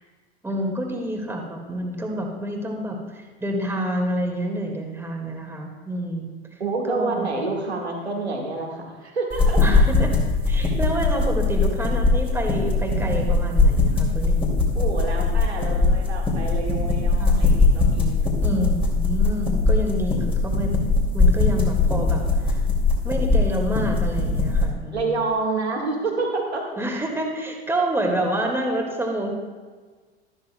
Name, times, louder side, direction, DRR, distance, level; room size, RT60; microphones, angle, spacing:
voice 1, 0.4-6.3 6.8-7.3 9.6-10.1 10.5-14.6 17.2-17.4 18.4-20.9 21.1-22.6 23.0-25.1 26.8-29.3, right 1 dB, 10° right, 1 dB, 1.9 m, -28 dB
voice 2, 6.6-9.7 14.8-18.4 24.9-26.7, right 3 dB, 85° right, 0 dB, 1.8 m, -28 dB
sound 1, 9.3-24.7, left 3 dB, 15° left, 2.5 m, -21 dB
13.0 x 12.0 x 2.3 m, 1.4 s
figure-of-eight pair, 80°, 32 cm